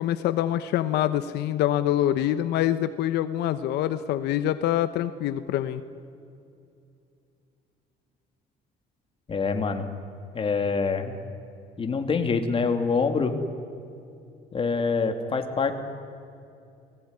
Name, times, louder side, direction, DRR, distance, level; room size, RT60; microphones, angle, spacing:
voice 1, 0.0-5.8, left 12 dB, 85° left, 11 dB, 1.0 m, -25 dB
voice 2, 9.3-9.9 10.3-11.2 11.8-13.4 14.5-15.7, left 4 dB, 35° left, 5 dB, 2.9 m, -25 dB
29.5 x 20.0 x 9.8 m, 2.6 s
cardioid pair, 110°, 17 cm